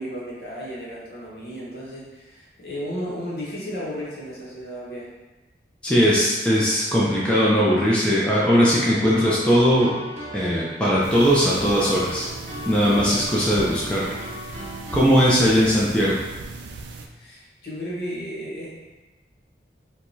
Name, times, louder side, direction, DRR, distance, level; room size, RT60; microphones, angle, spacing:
voice 1, 0.0-5.1 17.2-18.7, equal, 60° left, -6 dB, 1.0 m, -34 dB
voice 2, 5.8-9.9 10.3-12.3 12.7-14.2 14.9-16.2, equal, 5° left, -8 dB, 0.4 m, -19 dB
sound 1, 8.9-15.0, right 1 dB, 40° right, 0.7 m, -37 dB
sound 2, 11.0-17.1, right 3 dB, 90° right, 0.4 m, -38 dB
4.6 x 2.3 x 2.7 m, 1.1 s
head